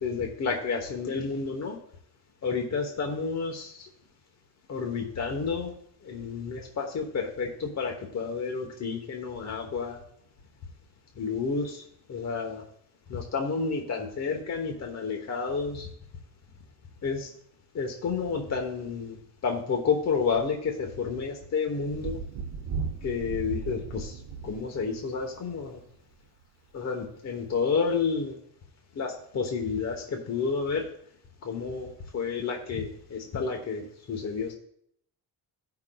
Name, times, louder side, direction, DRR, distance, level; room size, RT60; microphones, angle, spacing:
voice 1, 0.0-1.8 2.4-3.9 4.7-5.7 6.0-10.0 11.2-11.8 12.1-12.6 13.1-15.9 17.0-17.3 17.7-19.2 19.4-22.2 23.0-24.1 24.4-25.8 26.7-28.3 29.0-30.8 31.4-33.8 34.1-34.5, left 5 dB, 40° left, 1 dB, 1.1 m, -30 dB
Thunder, 21.9-25.8 27.1-27.2, right 5 dB, 60° right, 0.9 m, -36 dB
17.5 x 5.9 x 2.3 m, 0.68 s
cardioid pair, 145°, 41 cm